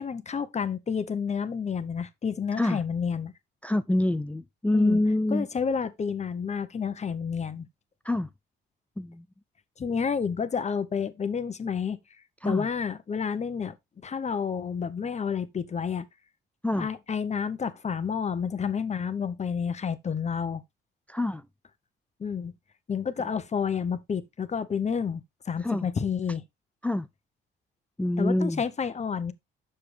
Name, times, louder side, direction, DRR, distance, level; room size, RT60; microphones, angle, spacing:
voice 1, 0.0-3.3 4.7-5.0 5.3-7.7 9.8-12.0 12.4-13.8 14.0-16.0 16.8-20.6 22.2-22.5 22.9-26.4 28.2-29.3, left 6 dB, 35° left, 0.9 m, -30 dB
voice 2, 3.6-5.5 8.0-8.3 9.0-9.3 12.4-12.7 16.6-16.9 21.1-21.4 25.6-25.9 26.8-27.1 28.0-28.6, left 1 dB, 5° left, 0.4 m, -26 dB
7.8 x 6.7 x 3.3 m
cardioid pair, 90°, 20 cm